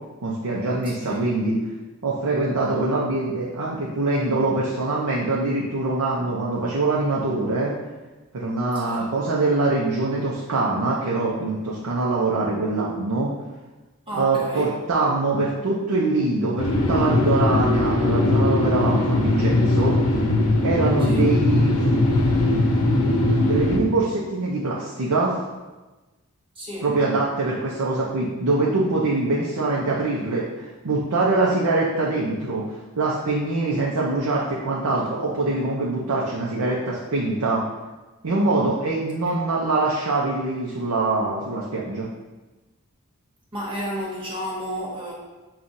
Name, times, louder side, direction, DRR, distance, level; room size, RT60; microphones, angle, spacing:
voice 1, 0.2-1.6 2.0-7.7 8.3-13.3 14.1-20.0 20.6-21.8 23.4-25.3 26.8-32.7 33.0-37.6 38.2-42.1, right 2 dB, 85° right, -4 dB, 0.6 m, -23 dB
voice 2, 0.8-1.2 8.7-9.1 14.1-14.8 21.0-21.3 26.5-26.9 43.5-45.1, equal, 25° right, -4 dB, 0.9 m, -31 dB
sound 1, 16.6-23.8, left 2 dB, 75° left, 0.7 m, -20 dB
7.1 x 2.4 x 2.6 m, 1.2 s
head